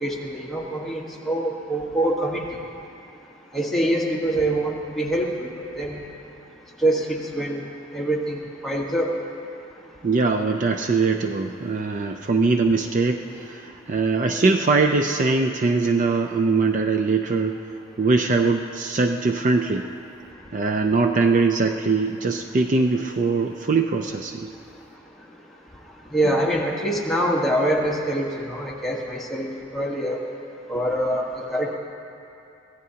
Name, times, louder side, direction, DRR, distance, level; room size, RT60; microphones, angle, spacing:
voice 1, 0.0-2.4 3.5-6.0 6.8-7.6 7.9-9.1 26.1-30.2 30.7-31.8, right 1 dB, ahead, -3 dB, 1.4 m, -25 dB
voice 2, 10.0-17.6 18.0-19.9 20.5-24.5, right 3 dB, 40° right, 4 dB, 0.4 m, -22 dB
23.0 x 16.0 x 2.8 m, 2.7 s
head